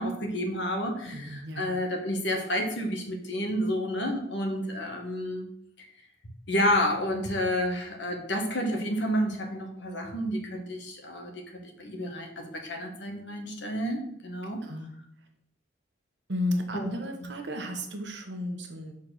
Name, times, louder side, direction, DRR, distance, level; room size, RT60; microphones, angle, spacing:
voice 1, 0.0-5.5 5.8-5.9 6.5-14.6 16.7-16.9, equal, 75° left, 2 dB, 1.4 m, -30 dB
voice 2, 1.1-1.6 14.6-14.9 16.3-18.9, left 1 dB, 70° right, 4 dB, 1.2 m, -33 dB
5.8 x 4.3 x 6.3 m, 0.77 s
head